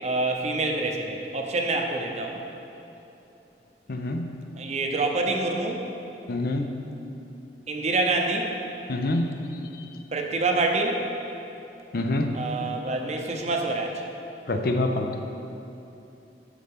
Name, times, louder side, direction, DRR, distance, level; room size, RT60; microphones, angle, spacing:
voice 1, 0.0-2.4 4.6-5.9 7.7-8.5 10.1-11.0 12.3-14.1, right 2 dB, 40° right, 2 dB, 0.7 m, -26 dB
voice 2, 3.9-4.3 6.3-6.7 8.9-9.3 9.7-9.8 11.9-12.3 14.5-15.1, left 2 dB, 55° left, 5 dB, 0.6 m, -26 dB
9.8 x 6.4 x 3.6 m, 2.9 s
head